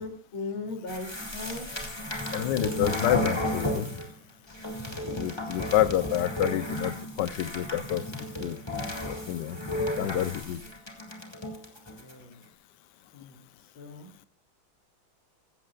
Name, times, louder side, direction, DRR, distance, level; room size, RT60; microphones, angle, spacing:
voice 1, 0.0-1.7 12.0-12.4 13.1-13.4 13.8-14.1, left 3 dB, 80° left, 2 dB, 3.7 m, -38 dB
sound 1, 0.9-4.1 4.5-12.1, left 1 dB, 15° left, 2.0 m, -33 dB
voice 2, 2.3-3.9 5.0-8.6 9.1-9.6 10.0-10.6, left 12 dB, 65° left, 14 dB, 1.2 m, -28 dB
15.5 x 15.0 x 2.4 m, 0.37 s
omnidirectional pair, 2.2 m